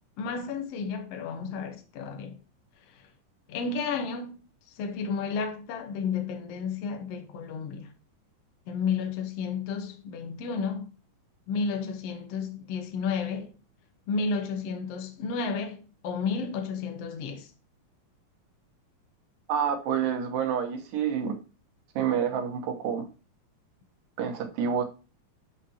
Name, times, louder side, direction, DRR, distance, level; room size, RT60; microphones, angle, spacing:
voice 1, 0.2-2.4 2.9-3.1 3.5-4.3 4.7-7.9 8.7-10.9 11.5-13.6 14.1-17.5, left 5 dB, 55° left, 1.9 m, -32 dB
voice 2, 19.5-21.4 22.0-23.1 24.2-24.8, right 7 dB, 80° right, 2.9 m, -28 dB
12.5 x 5.5 x 2.9 m
omnidirectional pair, 4.0 m